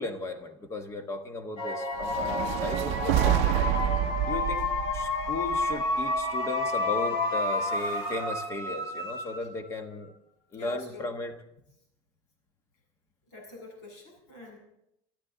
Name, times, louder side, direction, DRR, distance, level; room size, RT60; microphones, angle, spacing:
voice 1, 0.0-3.5 4.2-10.1 10.5-11.3, left 2 dB, 20° left, 7 dB, 1.3 m, -36 dB
sound 1, 1.6-9.7, left 2 dB, 40° left, 2.1 m, -30 dB
sound 2, 2.0-6.2, right 13 dB, 55° right, 0.6 m, -28 dB
voice 2, 10.5-11.1 13.3-14.6, left 3 dB, 65° left, 0 dB, 7.7 m, -46 dB
25.5 x 13.5 x 3.9 m, 0.81 s
cardioid pair, 175°, 14 cm